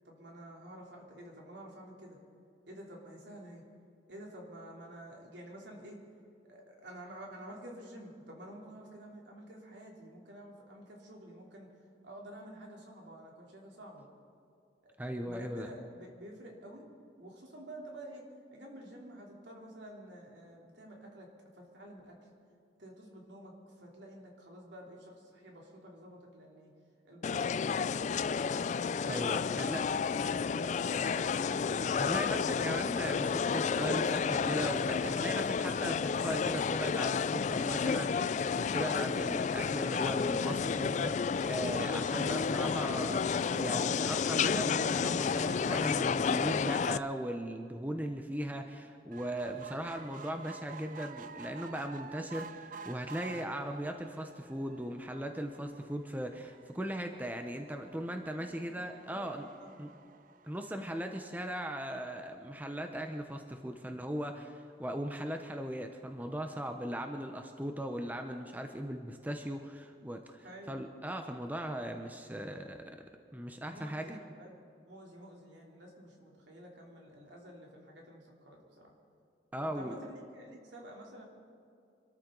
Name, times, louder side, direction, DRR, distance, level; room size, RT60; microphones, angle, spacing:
voice 1, 0.0-2.2 2.7-3.6 4.1-6.0 6.5-11.7 12.0-14.0 15.0-16.9 17.2-18.2 18.5-22.3 22.8-26.7 27.0-28.4 29.0-30.1 30.6-31.7 58.3-60.0 70.4-70.8 73.7-78.9 79.7-81.2, right 1 dB, 75° right, -1 dB, 3.4 m, -50 dB
voice 2, 15.0-15.7 29.1-29.8 31.9-59.5 59.8-59.9 60.4-72.8 73.3-74.2 79.5-79.9, right 1 dB, 10° right, 5 dB, 0.8 m, -38 dB
sound 1, 27.2-47.0, left 6 dB, 40° left, 0.3 m, -31 dB
sound 2, 49.1-61.7 62.3-62.4 62.7-62.8 63.0-63.1, right 5 dB, 45° right, 0.4 m, -51 dB
25.5 x 13.5 x 3.9 m, 2.4 s
head